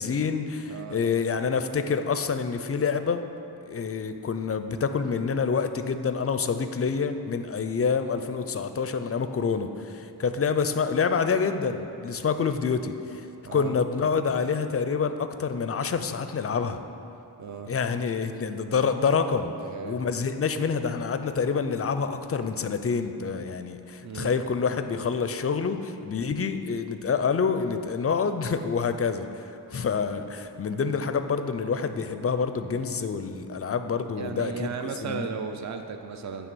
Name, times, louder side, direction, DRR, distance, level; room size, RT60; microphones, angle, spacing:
voice 1, 0.0-3.2 3.7-16.8 17.7-19.5 19.8-35.3, left 5 dB, 35° left, 9 dB, 0.4 m, -27 dB
voice 2, 0.7-1.0 13.5-14.2 17.4-17.7 19.6-20.0 24.0-24.3 34.2-36.5, right 5 dB, 45° right, 6 dB, 0.5 m, -36 dB
9.3 x 3.3 x 6.1 m, 2.7 s
wide cardioid pair, 65°, 41 cm